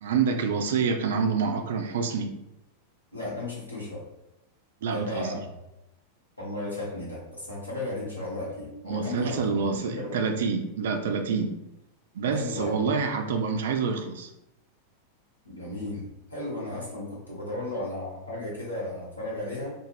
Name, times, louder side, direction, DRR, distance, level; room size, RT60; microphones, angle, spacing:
voice 1, 0.0-2.3 4.8-5.4 8.8-11.5 12.1-14.3, right 5 dB, 60° right, 6 dB, 0.3 m, -27 dB
voice 2, 3.1-4.0 4.9-5.4 6.4-10.2 12.3-12.8 15.4-19.7, left 1 dB, 85° left, -6 dB, 1.1 m, -35 dB
2.4 x 2.3 x 3.1 m, 0.89 s
figure-of-eight pair, 90°, 0 cm